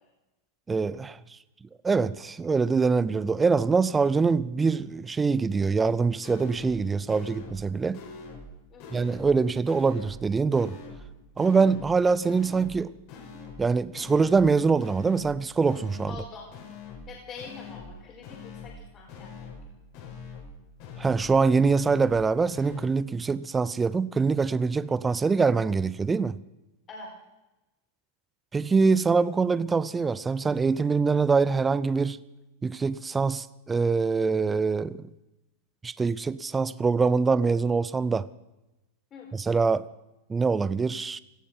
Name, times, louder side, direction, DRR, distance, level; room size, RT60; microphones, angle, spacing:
voice 1, 0.7-1.2 1.8-8.0 8.9-10.8 11.4-12.9 13.6-16.1 21.0-26.4 28.5-32.2 32.6-35.1 35.8-38.3 39.3-39.9 40.3-41.2, right 4 dB, 15° right, 0.5 m, -24 dB
sound 1, 6.2-6.8 7.1-7.7 7.9-8.5 8.8-9.4 9.7-10.2 10.5-11.1 11.4-11.9 12.2-12.8 13.1-13.7 13.9-14.5 14.8-15.4 15.7-16.2 16.5-17.1 17.4-17.9 18.2-18.8 19.1-19.7 19.9-20.5 20.8-21.4 21.6-22.2 22.5-22.9, left 4 dB, 55° left, 5.0 m, -43 dB
voice 2, 16.1-16.4 17.1-19.6 26.9-27.1 39.1-39.3, left 4 dB, 35° left, 4.6 m, -44 dB
17.5 x 13.5 x 5.8 m
hypercardioid pair, 110°, 0 cm